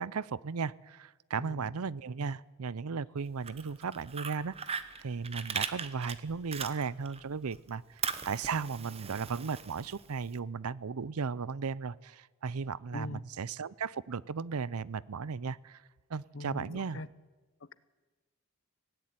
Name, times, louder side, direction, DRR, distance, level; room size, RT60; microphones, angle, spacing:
voice 1, 0.0-15.8 16.1-17.0, right 5 dB, 85° right, 22 dB, 0.6 m, -36 dB
Fire, 3.3-7.2 7.5-10.3, right 6 dB, 25° right, 1.1 m, -39 dB
voice 2, 16.3-17.1, left 2 dB, 60° left, 17 dB, 0.9 m, -41 dB
18.0 x 17.5 x 9.7 m, 1.3 s
head